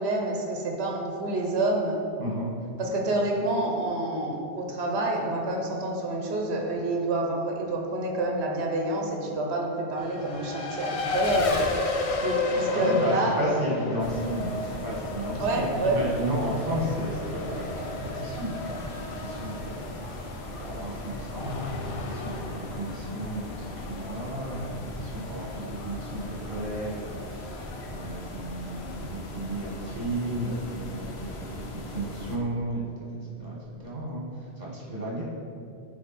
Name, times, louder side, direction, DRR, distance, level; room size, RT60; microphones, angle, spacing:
voice 1, 0.0-2.0 2.8-11.6 12.2-13.4 15.4-16.0, right 2 dB, 70° right, 1 dB, 1.1 m, -28 dB
voice 2, 2.2-2.5 12.5-32.8 33.4-35.2, right 1 dB, 40° right, -5 dB, 1.7 m, -33 dB
Race car auto racing, 10.0-29.1, left 3 dB, 45° left, 0.5 m, -34 dB
sound 1, 14.0-32.4, left 1 dB, 70° left, 1.0 m, -39 dB
9.2 x 3.5 x 4.2 m, 2.4 s
omnidirectional pair, 1.1 m